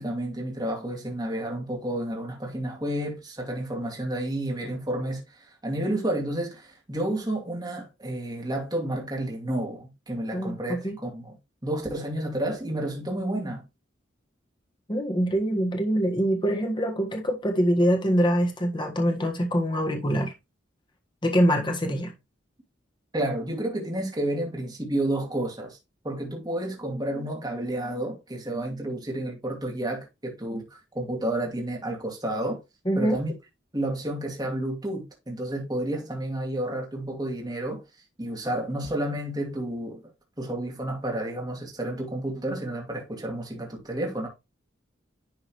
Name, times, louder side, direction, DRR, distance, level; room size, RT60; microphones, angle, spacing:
voice 1, 0.0-11.3 11.6-13.6 23.1-25.8 26.0-32.6 32.9-33.3 33.7-37.8 38.2-40.0 40.4-44.3, right 1 dB, 20° right, 2.3 m, -30 dB
voice 2, 10.3-10.9 14.9-20.3 21.2-22.1 32.8-33.2, equal, 25° left, 1.5 m, -24 dB
11.0 x 3.8 x 3.1 m
head